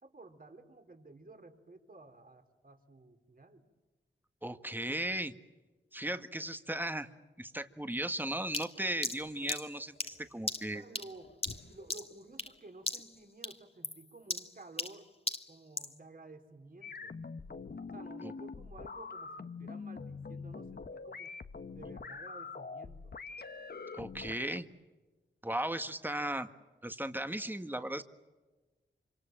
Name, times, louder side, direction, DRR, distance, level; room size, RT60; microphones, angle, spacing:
voice 1, 0.0-3.6 10.7-11.4 11.7-15.1 15.5-17.1 17.9-21.4 21.7-23.1, right 2 dB, 50° right, 5 dB, 4.0 m, -53 dB
voice 2, 4.4-5.3 5.9-7.1 7.4-10.8 18.2-18.3 23.9-24.7 25.4-26.5 26.8-28.0, right 1 dB, 10° right, 8 dB, 1.7 m, -36 dB
sound 1, 7.5-13.4, left 4 dB, 85° left, 2.5 m, -57 dB
sound 2, 8.5-12.6 12.9-13.2 13.4-16.0, left 2 dB, 30° left, 1.8 m, -38 dB
sound 3, 16.8-24.6, left 4 dB, 55° left, 1.2 m, -44 dB
27.0 x 26.0 x 7.6 m, 1.2 s
cardioid pair, 50°, 19 cm